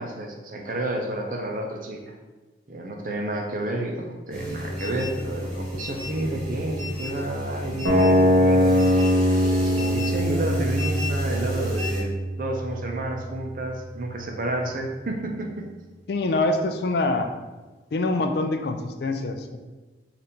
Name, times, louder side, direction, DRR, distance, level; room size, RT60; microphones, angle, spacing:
voice 1, 0.0-2.1 2.7-8.9 9.6-12.1 12.4-15.7, right 1 dB, 45° right, 2 dB, 0.5 m, -30 dB
sound 1, 4.3-12.0, left 1 dB, 5° left, 1.5 m, -33 dB
sound 2, 7.8-13.9, equal, 70° right, 0.9 m, -22 dB
voice 2, 16.1-17.3 17.9-19.6, left 2 dB, 60° left, 6 dB, 0.3 m, -25 dB
5.1 x 2.5 x 2.8 m, 1.2 s
head